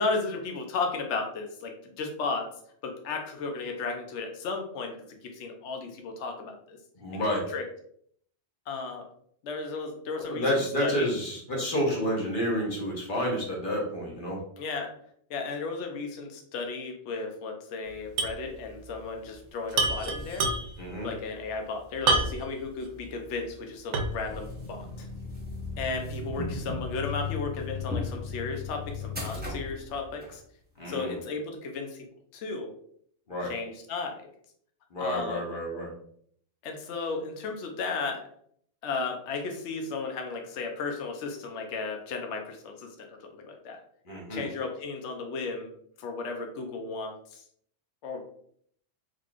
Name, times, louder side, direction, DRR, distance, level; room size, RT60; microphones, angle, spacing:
voice 1, 0.0-2.5 2.8-6.8 7.1-7.2 7.5-7.6 8.7-9.1 9.4-11.1 14.6-14.9 15.3-20.5 21.0-25.1 25.8-30.4 30.9-32.0 32.3-32.7 33.5-34.3 35.0-35.5 36.6-38.2 38.8-42.9 43.3-43.8 44.3-45.7 46.0-47.4 48.0-48.2, left 4 dB, 75° left, 3 dB, 0.9 m, -34 dB
voice 2, 7.0-7.4 10.1-14.4 20.8-21.1 30.8-31.1 33.3-33.5 34.9-35.9 44.1-44.4, equal, 45° left, -2 dB, 1.1 m, -29 dB
sound 1, 18.2-18.4 18.7-18.8 19.7-20.9 22.1-22.6 23.1-23.2 23.9-24.3, right 3 dB, 80° right, 0.9 m, -26 dB
sound 2, 24.3-30.3, left 4 dB, 10° right, 0.7 m, -36 dB
3.9 x 3.1 x 2.3 m, 0.64 s
omnidirectional pair, 1.2 m